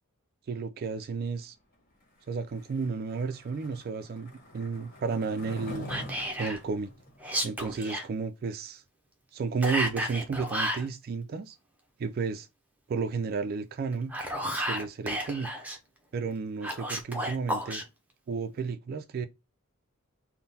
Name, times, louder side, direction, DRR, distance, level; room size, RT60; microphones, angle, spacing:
voice 1, 0.5-1.5 2.3-5.9 6.4-6.9 7.4-8.8 9.3-11.6 12.0-12.5 12.9-14.1 14.6-15.5 16.1-17.8 18.3-19.3, right 4 dB, 45° right, 0.3 m, -32 dB
Skateboard, 2.5-7.9, equal, 45° left, 1.4 m, -45 dB
Whispering, 5.9-6.6 7.2-8.1 9.6-10.9 13.9-15.8 16.6-17.8, equal, 5° right, 0.7 m, -32 dB
3.7 x 2.1 x 4.0 m
head